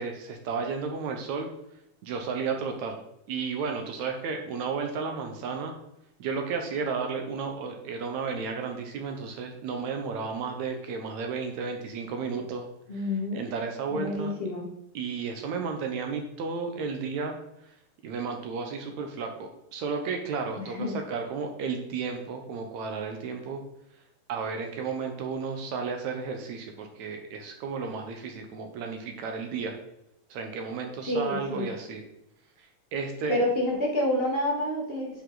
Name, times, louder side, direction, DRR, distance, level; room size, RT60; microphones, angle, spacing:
voice 1, 0.0-1.5 2.0-3.0 3.3-5.7 6.2-12.7 12.9-14.3 14.9-17.4 18.0-23.6 24.3-29.8 30.3-32.0 32.9-33.3, right 5 dB, 70° right, 4 dB, 2.2 m, -33 dB
voice 2, 12.9-13.4 13.9-14.7 20.6-21.0 31.0-31.7 33.3-35.2, left 1 dB, 25° left, -2 dB, 1.3 m, -28 dB
10.0 x 5.4 x 3.9 m, 0.81 s
omnidirectional pair, 3.7 m